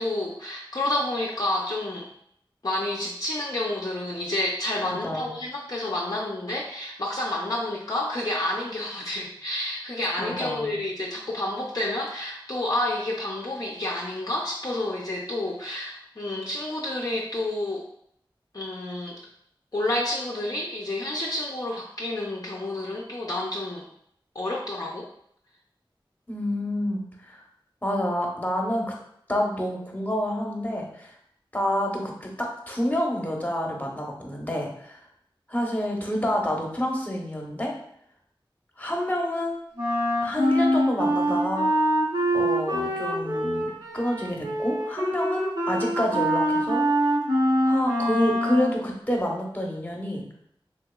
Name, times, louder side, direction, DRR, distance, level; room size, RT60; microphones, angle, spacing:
voice 1, 0.0-2.1 2.6-17.9 18.5-19.2 19.7-23.8 24.3-25.1, left 1 dB, 45° left, -3 dB, 0.4 m, -29 dB
voice 2, 4.8-5.3 10.2-10.8 26.3-27.4 27.8-28.9 29.3-31.1 31.5-35.0 35.5-37.7 38.8-39.6 40.2-41.7 42.3-46.8 47.7-50.2, left 1 dB, 20° left, -1 dB, 0.8 m, -28 dB
Wind instrument woodwind instrument, 39.7-48.8, equal, 60° right, 0.9 m, -24 dB
3.5 x 2.9 x 2.2 m, 0.69 s
wide cardioid pair, 40°, 9 cm